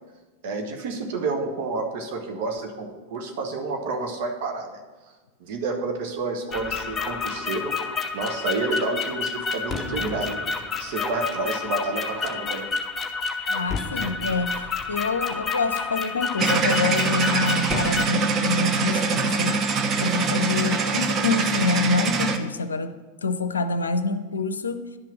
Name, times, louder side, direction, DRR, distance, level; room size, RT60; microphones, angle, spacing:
voice 1, 0.4-4.8 5.4-7.7 8.1-12.7, right 3 dB, 50° right, 4 dB, 1.5 m, -29 dB
sound 1, 6.5-18.0, left 4 dB, 20° left, 0.8 m, -29 dB
voice 2, 13.5-14.6 14.9-19.6 20.0-24.8, left 3 dB, 75° left, 11 dB, 0.6 m, -26 dB
sound 2, 16.4-22.4, right 4 dB, 25° right, 0.9 m, -24 dB
10.5 x 6.0 x 6.0 m, 1.3 s
figure-of-eight pair, 90°, 0 cm